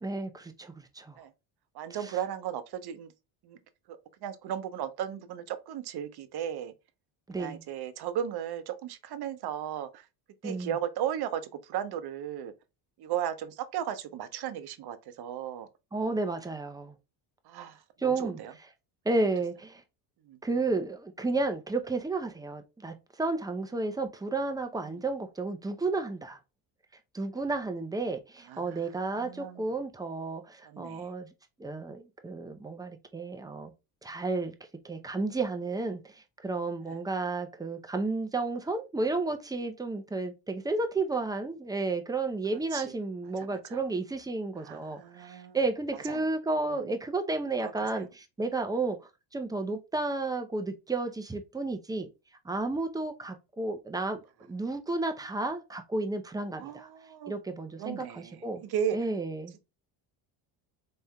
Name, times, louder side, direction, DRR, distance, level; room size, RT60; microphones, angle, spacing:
voice 1, 0.0-1.2 2.0-2.1 7.3-7.6 10.4-10.7 15.9-16.9 18.0-18.4 19.1-19.8 20.4-26.4 27.1-31.3 31.6-33.7 34.0-34.5 34.8-49.0 49.3-52.1 52.4-54.2 54.5-56.9 57.3-58.6 58.9-59.5, right 3 dB, 10° right, 0.5 m, -32 dB
voice 2, 1.7-3.1 3.4-3.6 3.9-6.7 7.4-10.0 10.4-12.5 13.0-15.7 17.5-18.5 20.3-20.4 24.9-25.0 28.5-28.8 29.1-29.7 30.6-31.1 36.8-36.9 42.7-43.0 43.4-43.8 44.6-45.6 45.9-46.3 46.7-46.9 47.6-48.1 56.6-57.3 57.8-59.0, right 9 dB, 55° right, 0.7 m, -36 dB
4.2 x 3.5 x 2.2 m
cardioid pair, 100°, 47 cm